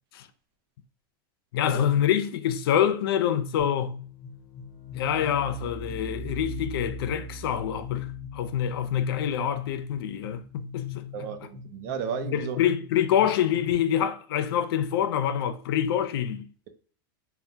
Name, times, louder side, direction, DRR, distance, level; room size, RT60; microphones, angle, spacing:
voice 1, 1.5-4.0 4.9-8.1 8.3-11.1 12.3-16.5, left 9 dB, 90° left, 0.4 m, -26 dB
sound 1, 3.6-13.7, left 4 dB, 50° left, 0.8 m, -39 dB
voice 2, 11.1-12.6, right 7 dB, 50° right, 0.5 m, -34 dB
3.2 x 2.1 x 2.7 m
supercardioid pair, 165°, 12 cm